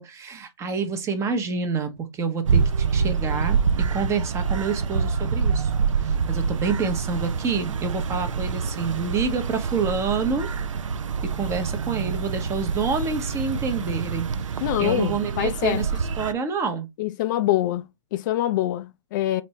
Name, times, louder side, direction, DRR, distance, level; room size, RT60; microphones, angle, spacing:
voice 1, 0.0-5.7 6.0-10.5 11.4-14.3 14.5-16.9, right 5 dB, 20° right, 0.8 m, -28 dB
sound 1, 2.5-16.3, right 6 dB, 85° right, 0.5 m, -26 dB
voice 2, 14.6-15.8 17.0-19.4, left 14 dB, 40° left, 0.4 m, -25 dB
4.1 x 2.7 x 3.1 m
hypercardioid pair, 130°, 16 cm